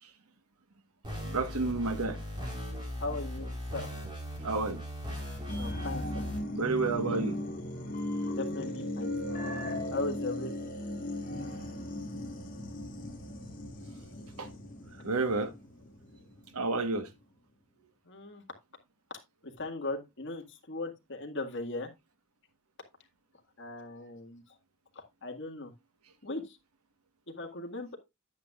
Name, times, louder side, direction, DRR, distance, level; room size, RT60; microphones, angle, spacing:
sound 1, 1.0-6.4, equal, 20° right, 3.9 m, -38 dB
voice 1, 1.3-2.2 4.4-4.8 6.5-7.4 14.4-14.5 15.0-15.5 16.5-17.1, right 3 dB, 85° right, 1.3 m, -30 dB
voice 2, 3.0-3.8 5.6-6.2 8.2-9.1 9.9-10.7 18.1-18.4 19.4-21.9 23.6-24.4 25.0-25.7 26.2-26.6 27.3-28.0, left 2 dB, 55° left, 2.0 m, -38 dB
sound 2, 5.5-16.5 16.9-17.0, left 1 dB, 40° left, 2.2 m, -37 dB
10.0 x 9.3 x 2.4 m
head